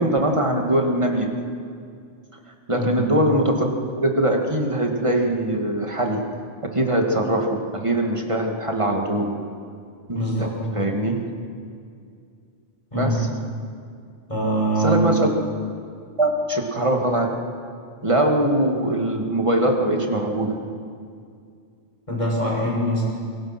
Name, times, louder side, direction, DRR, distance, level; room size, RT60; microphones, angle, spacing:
voice 1, 0.0-1.3 2.7-3.7 4.0-6.3 6.6-9.3 10.1-10.5 10.7-11.3 12.9-13.3 14.8-15.3 16.2-17.4 18.0-20.6, right 1 dB, 25° right, 2 dB, 2.4 m, -22 dB
voice 2, 2.8-3.1 10.1-10.6 12.9-13.3 14.3-15.2 22.1-23.0, right 1 dB, 25° left, -4 dB, 7.1 m, -23 dB
27.5 x 23.0 x 6.1 m, 2.3 s
omnidirectional pair, 1.2 m